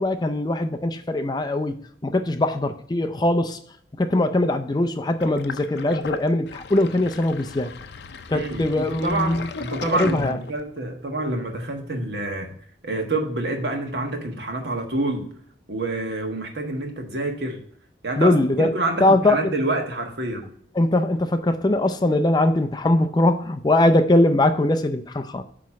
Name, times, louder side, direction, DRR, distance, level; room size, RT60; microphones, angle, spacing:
voice 1, 0.0-1.8 2.0-3.6 4.0-7.7 8.3-9.5 9.9-10.4 18.2-18.7 19.0-19.4 20.8-25.4, left 1 dB, 25° left, 0.4 m, -21 dB
Sink (filling or washing), 5.2-10.8, left 5 dB, 75° left, 0.5 m, -36 dB
voice 2, 8.3-12.5 12.8-15.3 15.7-17.6 18.0-20.5, right 2 dB, 70° right, 1.4 m, -27 dB
8.6 x 3.1 x 5.9 m
head